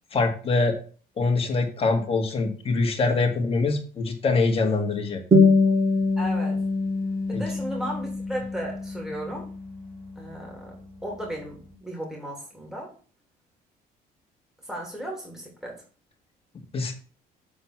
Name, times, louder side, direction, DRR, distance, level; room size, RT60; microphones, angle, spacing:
voice 1, 0.1-0.8 1.2-5.2 7.3-7.4 16.7-17.0, left 3 dB, 35° left, 2 dB, 2.0 m, -24 dB
sound 1, 5.3-10.3, left 3 dB, 30° right, 2.5 m, -24 dB
voice 2, 6.2-6.6 7.3-9.5 10.2-10.7 11.0-12.9 14.6-15.8, right 1 dB, 5° right, -2 dB, 2.9 m, -35 dB
7.3 x 4.3 x 5.9 m, 0.41 s
cardioid pair, 110°, 17 cm